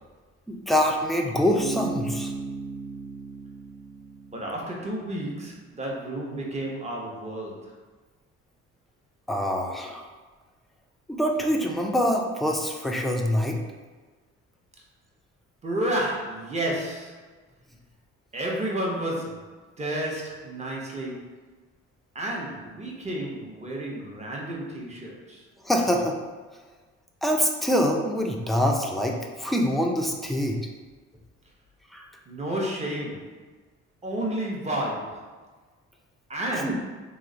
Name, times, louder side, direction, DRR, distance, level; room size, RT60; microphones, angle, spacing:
voice 1, 0.5-2.3 9.3-10.1 11.1-13.6 25.6-26.2 27.2-30.6 31.9-32.0 36.5-36.8, equal, ahead, 0 dB, 0.4 m, -25 dB
Bass guitar, 1.6-5.1, right 4 dB, 50° right, 0.5 m, -35 dB
voice 2, 4.3-7.7 15.6-17.2 18.3-19.4 19.8-21.3 22.1-25.4 32.3-33.4 34.0-35.3 36.3-36.8, right 1 dB, 25° right, -3 dB, 0.8 m, -31 dB
3.0 x 2.0 x 3.7 m, 1.3 s
cardioid pair, 90°, 30 cm